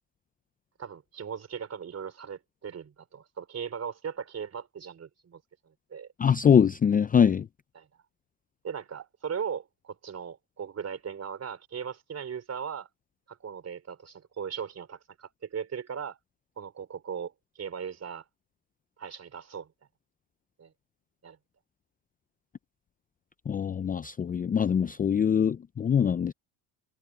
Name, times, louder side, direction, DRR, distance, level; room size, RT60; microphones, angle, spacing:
voice 1, 0.8-6.1 7.8-7.9 8.6-12.9 13.3-16.2 16.6-18.2 19.0-19.7 20.6-20.7 21.2-21.4, right 7 dB, 35° right, 4.0 m, -38 dB
voice 2, 6.2-7.5 23.5-26.3, left 7 dB, 20° left, 0.4 m, -23 dB
supercardioid pair, 90°, 42 cm